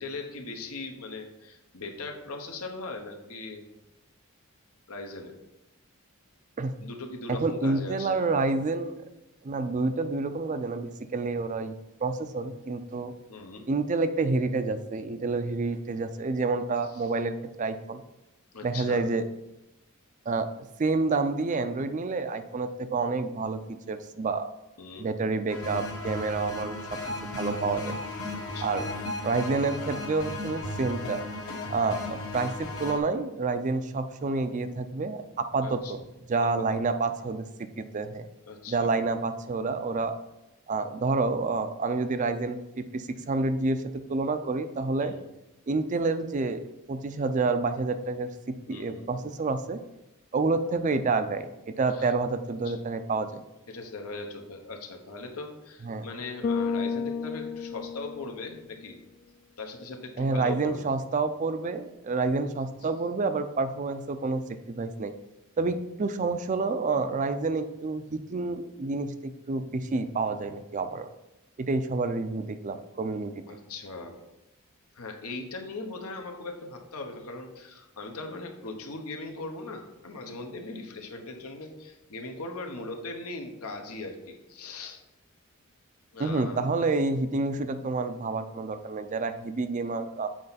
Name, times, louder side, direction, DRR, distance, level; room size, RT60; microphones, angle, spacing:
voice 1, 0.0-3.6 4.9-5.3 6.8-8.2 13.3-13.6 16.9-17.1 18.5-19.1 24.8-25.1 28.3-28.9 35.6-36.0 38.5-39.0 45.0-45.3 48.7-49.1 51.9-52.1 52.6-52.7 53.7-59.0 59.6-60.9 73.5-74.2 74.9-85.0 86.1-86.7, left 3 dB, 90° left, 3 dB, 1.0 m, -39 dB
voice 2, 7.3-9.0 9.4-11.7 12.0-13.1 13.7-18.0 18.6-19.2 20.3-20.5 20.8-24.5 25.0-28.0 28.6-28.9 29.2-31.2 31.7-36.0 36.3-38.3 38.7-40.1 40.7-45.2 45.7-49.8 50.3-53.4 55.8-56.1 60.2-65.1 65.6-71.1 71.6-73.3 86.2-90.3, right 3 dB, 35° right, 10 dB, 0.4 m, -29 dB
sound 1, 25.5-33.0, left 2 dB, 70° left, 1.2 m, -35 dB
Bass guitar, 56.4-58.8, left 5 dB, 45° left, 0.3 m, -31 dB
7.7 x 4.3 x 4.1 m, 0.94 s
head